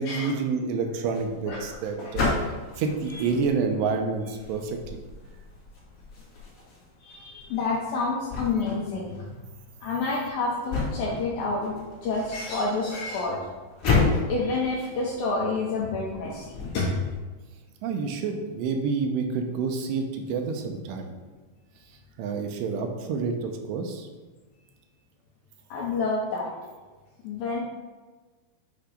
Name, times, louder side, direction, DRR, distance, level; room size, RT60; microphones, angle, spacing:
voice 1, 0.0-2.3 2.8-5.0 17.8-21.0 22.2-24.1, right 5 dB, 85° right, 4 dB, 2.8 m, -28 dB
sound 1, 1.0-17.2, left 4 dB, 45° left, 2.0 m, -33 dB
voice 2, 1.5-2.2 3.1-3.2 7.0-9.3 9.8-13.4 13.9-17.0 25.7-26.5 27.2-27.6, left 3 dB, 80° left, -3 dB, 2.1 m, -29 dB
8.1 x 2.9 x 4.9 m, 1.3 s
omnidirectional pair, 4.9 m